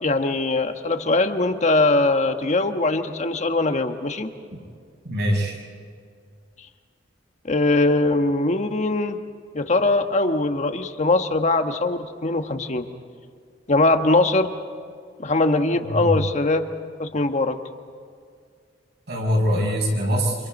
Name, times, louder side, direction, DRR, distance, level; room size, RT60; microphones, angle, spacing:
voice 1, 0.0-4.3 7.4-9.2 9.5-12.9 13.7-14.5 15.2-16.6 17.0-17.6, left 2 dB, 40° left, 7 dB, 1.3 m, -21 dB
voice 2, 5.0-5.6 15.8-16.1 19.1-20.4, equal, 65° right, -1 dB, 6.2 m, -23 dB
29.0 x 27.0 x 5.3 m, 2.2 s
head